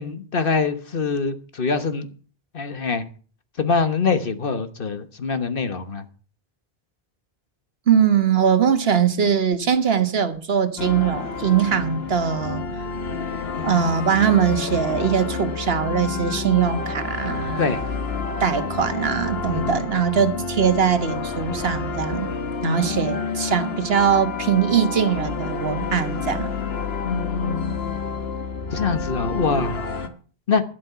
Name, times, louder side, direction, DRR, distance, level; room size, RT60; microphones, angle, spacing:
voice 1, 0.0-2.1 2.5-3.0 3.6-6.0 17.6-17.8 19.5-20.0 22.3-22.4 22.6-22.8 27.0-27.9 28.7-29.8 30.5-30.6, left 4 dB, 60° left, 1.4 m, -24 dB
voice 2, 7.9-12.6 13.6-17.7 18.4-22.3 22.6-26.5, right 7 dB, 75° right, 1.5 m, -21 dB
sound 1, 10.8-30.1, left 4 dB, 75° left, 1.6 m, -29 dB
12.0 x 11.0 x 5.7 m
omnidirectional pair, 1.0 m